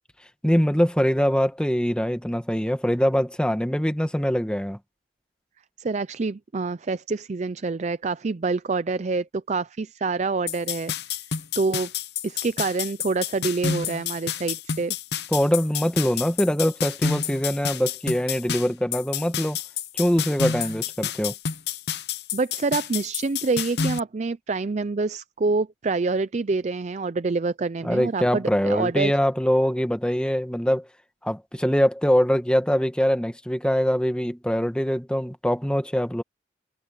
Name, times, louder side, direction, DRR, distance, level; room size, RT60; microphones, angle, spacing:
voice 1, 0.4-4.8 15.3-19.6 19.9-21.3 27.8-30.9 31.2-36.2, equal, 5° left, 1.4 m, -23 dB
voice 2, 5.8-10.9 11.6-11.9 12.2-15.0 20.6-20.7 22.3-29.1, right 3 dB, 40° right, 0.5 m, -26 dB
sound 1, 10.5-24.0, left 7 dB, 65° left, 0.8 m, -29 dB
head